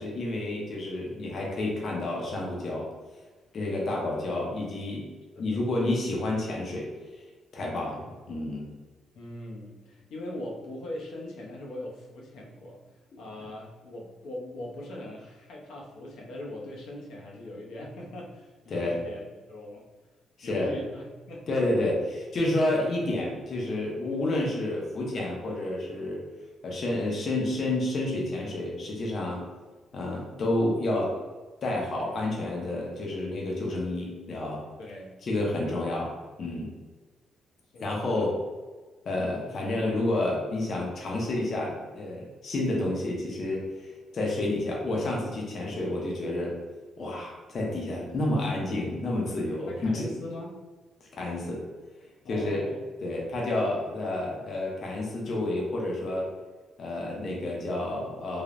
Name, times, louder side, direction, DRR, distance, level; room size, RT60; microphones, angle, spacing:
voice 1, 0.0-2.9 3.5-5.1 5.4-6.9 7.5-8.7 18.7-19.0 20.4-20.7 21.5-26.2 26.6-29.4 29.9-31.2 31.6-34.6 35.2-36.1 36.4-36.7 37.8-38.4 39.1-46.5 47.0-50.1 51.0-51.6 52.3-52.7 53.0-56.3 56.8-58.4, left 1 dB, 40° left, -2 dB, 0.5 m, -30 dB
voice 2, 9.1-12.8 13.2-19.9 20.4-21.6 34.8-35.1 37.7-38.3 49.7-50.6 52.2-52.9, left 1 dB, 85° left, -3 dB, 0.6 m, -40 dB
3.1 x 2.0 x 2.4 m, 1.3 s
cardioid pair, 160°, 0 cm